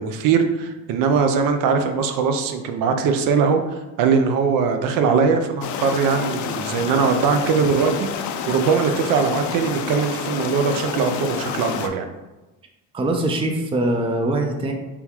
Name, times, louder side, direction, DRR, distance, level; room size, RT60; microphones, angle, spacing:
voice 1, 0.0-12.1, right 5 dB, 70° right, 6 dB, 0.6 m, -21 dB
sound 1, 5.6-11.9, left 7 dB, 60° left, 0.5 m, -29 dB
voice 2, 12.9-14.7, right 1 dB, 15° right, 3 dB, 0.4 m, -22 dB
3.6 x 2.3 x 4.4 m, 1.1 s
cardioid pair, 110°, 34 cm